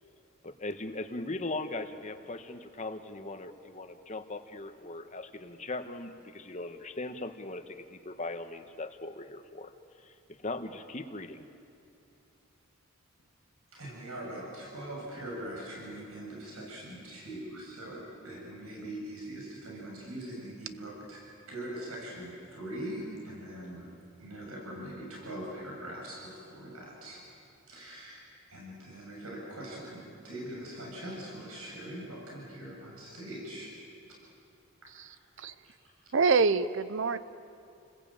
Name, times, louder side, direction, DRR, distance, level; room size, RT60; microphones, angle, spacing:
voice 1, 0.4-9.7 10.0-11.5, left 2 dB, 35° left, 8 dB, 1.3 m, -39 dB
voice 2, 13.7-23.9 24.2-27.2 27.7-33.7 34.8-34.9, right 1 dB, 85° right, -2 dB, 7.1 m, -42 dB
voice 3, 34.9-35.5 36.1-37.2, right 4 dB, 60° right, 14 dB, 0.6 m, -26 dB
30.0 x 20.5 x 9.0 m, 2.7 s
head